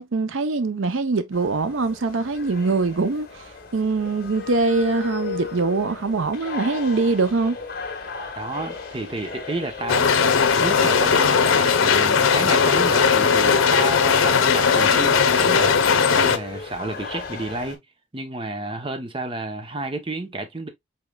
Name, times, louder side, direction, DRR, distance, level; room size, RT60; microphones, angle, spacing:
voice 1, 0.0-3.5 3.7-7.6, right 3 dB, 80° right, 0.7 m, -23 dB
sound 1, 1.3-17.7, left 4 dB, 45° left, 1.6 m, -35 dB
voice 2, 8.4-10.1 10.6-17.8 18.1-20.7, right 2 dB, 25° right, 0.8 m, -31 dB
sound 2, 9.9-16.4, left 6 dB, 90° left, 0.7 m, -18 dB
5.1 x 4.4 x 2.3 m
head